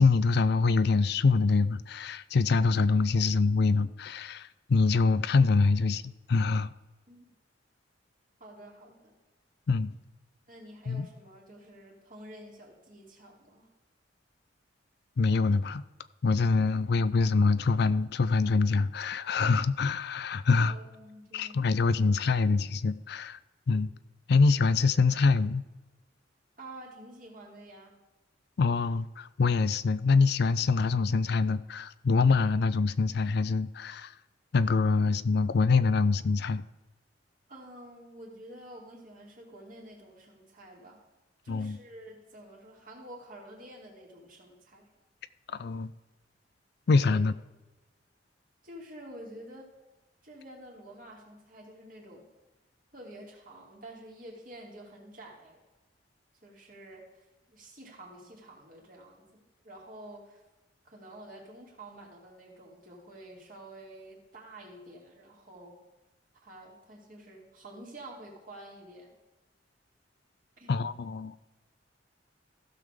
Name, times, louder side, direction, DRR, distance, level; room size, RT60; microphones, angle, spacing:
voice 1, 0.0-6.7 9.7-9.9 10.9-11.1 15.2-15.8 16.2-20.7 21.3-23.4 23.7-23.9 24.3-25.6 28.6-34.1 34.5-36.6 41.5-41.8 45.5-45.9 46.9-47.3 70.7-71.3, left 4 dB, 65° left, 0.4 m, -25 dB
voice 2, 8.4-9.2 10.5-13.7 20.7-21.7 26.6-28.0 37.5-41.0 41.4-44.9 47.0-47.2 48.6-49.7 50.2-52.3 52.9-55.6 56.4-57.1 57.5-60.4 60.8-65.8 66.4-69.1 70.6-70.8, right 1 dB, 50° right, 2.8 m, -49 dB
15.5 x 6.7 x 3.6 m
head